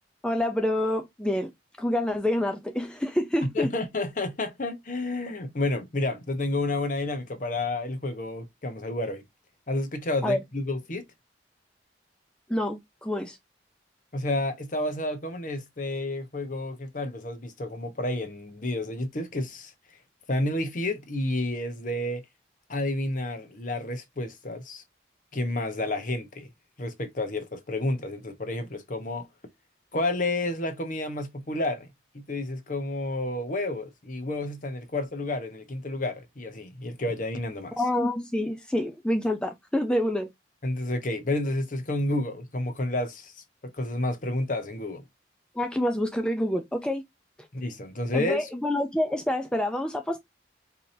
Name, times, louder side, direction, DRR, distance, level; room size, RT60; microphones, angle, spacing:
voice 1, 0.2-1.5 1.8-3.7 10.2-10.4 12.5-13.4 37.8-40.3 45.6-47.0 48.1-50.2, left 1 dB, 5° left, 0.4 m, -27 dB
voice 2, 3.5-9.2 9.7-11.0 14.1-19.7 20.3-22.2 22.7-24.8 25.3-26.5 26.8-29.3 29.9-31.9 32.1-37.8 40.6-43.3 43.6-45.0 47.5-48.5, left 2 dB, 45° left, 0.9 m, -30 dB
4.7 x 2.8 x 2.6 m
head